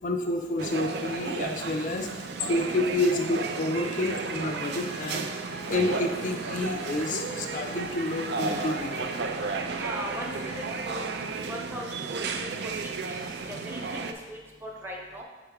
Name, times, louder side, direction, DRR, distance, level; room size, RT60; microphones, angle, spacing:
voice 1, 0.0-9.2, left 2 dB, 45° left, 3 dB, 0.4 m, -29 dB
sound 1, 0.6-14.1, right 4 dB, 65° right, 0.4 m, -33 dB
Guitar, 3.4-10.8, right 3 dB, 80° right, 0.8 m, -42 dB
voice 2, 9.8-11.0 11.5-12.5 12.8-14.0 14.3-15.2, equal, 10° right, -2 dB, 0.8 m, -39 dB
6.5 x 3.4 x 4.7 m, 1.3 s
head